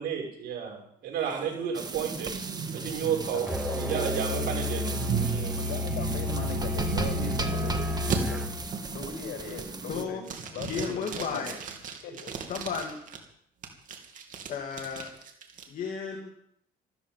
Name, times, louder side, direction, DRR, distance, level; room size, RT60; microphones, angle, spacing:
voice 1, 0.0-2.3 2.7-4.8 5.2-5.6, right 7 dB, 70° right, -1 dB, 6.4 m, -32 dB
sound 1, 1.3-7.6 8.1-8.2 8.7-9.1 9.5-9.9 10.2-13.2 13.6-15.6, right 6 dB, 50° right, 2.8 m, -36 dB
sound 2, 1.7-10.0, right 3 dB, 25° right, 1.6 m, -37 dB
voice 2, 3.3-4.6 5.5-8.0 8.3-8.4 8.8-11.6 12.0-12.3, left 4 dB, 80° left, 3 dB, 6.2 m, -40 dB
Musical instrument, 3.5-8.6, left 2 dB, 5° right, 2.4 m, -31 dB
voice 3, 9.9-10.2 10.7-11.6 12.5-13.0 14.5-15.1 15.7-16.3, left 6 dB, 50° left, 3 dB, 2.3 m, -33 dB
14.0 x 14.0 x 5.5 m, 0.73 s
cardioid pair, 110°, 17 cm